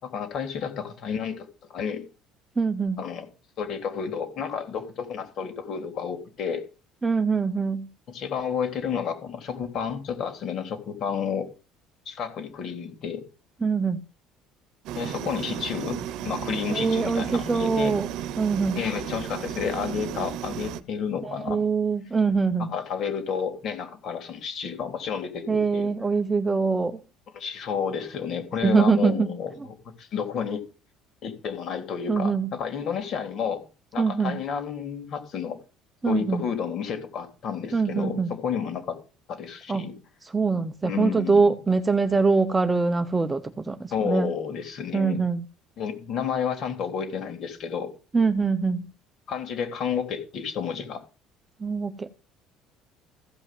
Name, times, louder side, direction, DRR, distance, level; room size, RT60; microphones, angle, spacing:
voice 1, 0.0-1.5 1.7-2.1 3.0-3.3 3.6-6.6 8.1-11.5 12.0-13.2 15.0-17.9 18.7-21.6 22.6-25.9 27.3-30.6 31.2-33.7 33.9-35.6 36.1-39.0 39.3-39.9 40.8-41.5 43.9-45.2 45.8-47.9 49.3-51.0, left 7 dB, 45° left, 3.1 m, -31 dB
voice 2, 2.6-3.0 7.0-7.9 13.6-14.0 16.7-18.1 18.4-18.8 21.2-22.7 25.5-27.0 28.6-29.3 32.1-32.5 34.0-34.4 36.0-36.4 37.7-38.3 39.7-39.9 40.3-44.3 44.9-45.4 48.1-48.8 51.6-52.1, right 4 dB, 15° right, 0.8 m, -23 dB
sound 1, 14.9-20.8, right 10 dB, 65° right, 1.0 m, -34 dB
15.0 x 5.5 x 7.6 m
cardioid pair, 150°, 0 cm